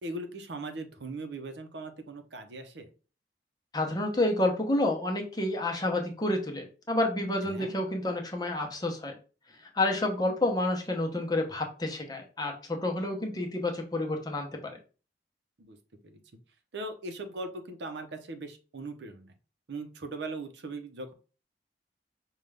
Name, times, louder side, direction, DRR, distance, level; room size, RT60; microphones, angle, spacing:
voice 1, 0.0-2.9 7.5-7.7 15.6-15.8 16.0-16.2 16.7-19.3 19.7-21.1, right 2 dB, 80° right, 7 dB, 0.7 m, -39 dB
voice 2, 3.7-9.1 9.7-14.7, left 1 dB, 20° left, 2 dB, 0.7 m, -29 dB
5.3 x 2.3 x 3.3 m, 0.36 s
head